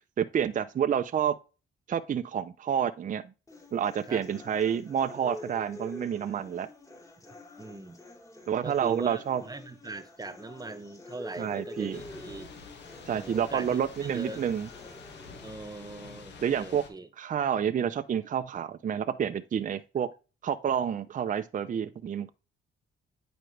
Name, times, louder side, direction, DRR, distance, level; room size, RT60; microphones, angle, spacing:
voice 1, 0.2-1.4 1.9-3.2 3.7-6.7 8.5-9.4 11.4-12.0 13.1-14.7 16.4-16.8 17.2-20.1 20.4-22.3, right 8 dB, 40° right, 0.6 m, -29 dB
sound 1, 3.5-15.5, left 2 dB, 15° left, 2.5 m, -47 dB
voice 2, 7.6-8.0 8.6-12.5 13.1-14.4 15.4-17.1, right 2 dB, 20° right, 1.1 m, -41 dB
Thunder / Rain, 11.9-16.9, left 5 dB, 60° left, 1.8 m, -48 dB
9.2 x 5.1 x 3.3 m
cardioid pair, 90°, 20 cm